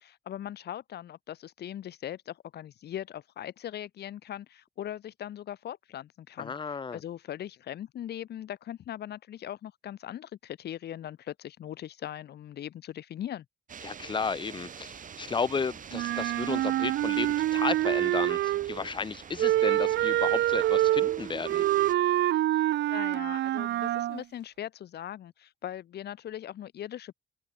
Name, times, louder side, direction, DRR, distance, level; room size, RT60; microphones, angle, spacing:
voice 1, 0.0-13.5 22.9-27.1, left 11 dB, 65° left, 1.9 m, -40 dB
voice 2, 6.4-7.0 13.8-21.6, left 5 dB, 25° left, 0.9 m, -33 dB
sound 1, 13.7-21.9, right 7 dB, 50° right, 2.7 m, -45 dB
Wind instrument woodwind instrument, 15.9-18.8 19.4-24.2, right 14 dB, 85° right, 1.5 m, -26 dB
open air
cardioid pair, 105°, 18 cm